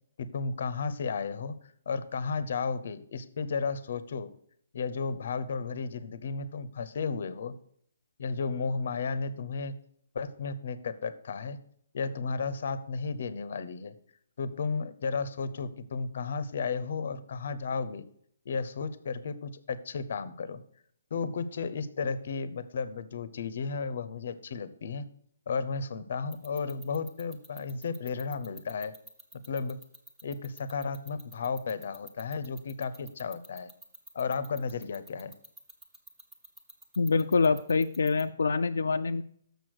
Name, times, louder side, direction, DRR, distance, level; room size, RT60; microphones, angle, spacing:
voice 1, 0.2-1.5 1.9-4.3 4.7-7.5 8.2-9.7 10.1-11.6 11.9-14.0 14.4-18.0 18.5-20.6 21.1-25.1 25.5-28.9 29.5-29.8 30.2-33.7 34.1-35.3, left 5 dB, 50° left, 14 dB, 0.7 m, -33 dB
sound 1, 26.3-38.2, right 1 dB, 5° right, 0.6 m, -49 dB
voice 2, 37.0-39.2, left 4 dB, 85° left, 7 dB, 0.4 m, -25 dB
6.6 x 6.2 x 6.4 m, 0.64 s
hypercardioid pair, 170°, 0 cm